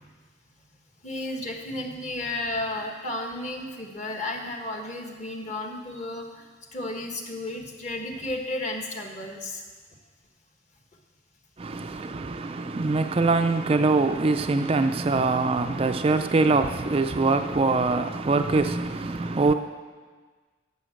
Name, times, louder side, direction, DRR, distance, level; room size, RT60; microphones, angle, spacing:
voice 1, 1.0-9.6 17.1-17.2 19.1-19.2, left 1 dB, 40° left, 1.5 m, -33 dB
voice 2, 11.6-19.5, right 3 dB, 30° right, 0.4 m, -23 dB
11.0 x 7.0 x 7.8 m
head